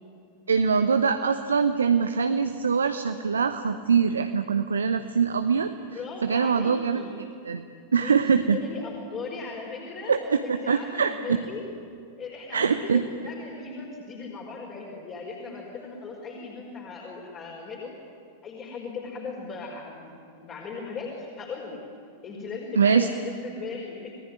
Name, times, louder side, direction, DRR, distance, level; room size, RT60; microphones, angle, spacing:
voice 1, 0.5-5.7 6.2-7.0 7.4-8.6 10.1-11.4 12.5-13.0 22.8-23.1, right 6 dB, 70° right, 9 dB, 1.0 m, -23 dB
voice 2, 5.9-7.1 8.0-11.6 12.2-17.9 18.4-21.8 22.2-24.1, left 4 dB, 30° left, -1 dB, 5.1 m, -38 dB
29.5 x 20.0 x 9.9 m, 2.5 s
figure-of-eight pair, 90°, 0 cm